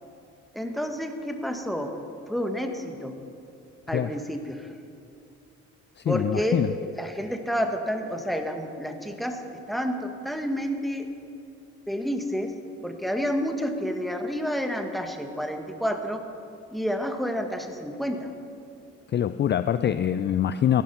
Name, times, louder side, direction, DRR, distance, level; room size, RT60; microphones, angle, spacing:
voice 1, 0.5-2.0 2.3-3.1 3.9-4.7 6.0-6.6 6.9-9.4 9.7-11.1 11.9-12.5 12.8-16.2 16.7-18.3, equal, ahead, 4 dB, 1.5 m, -29 dB
voice 2, 6.0-6.7 19.1-20.8, left 9 dB, 35° left, 12 dB, 0.4 m, -24 dB
15.5 x 11.5 x 5.8 m, 2.5 s
cardioid pair, 90°, 30 cm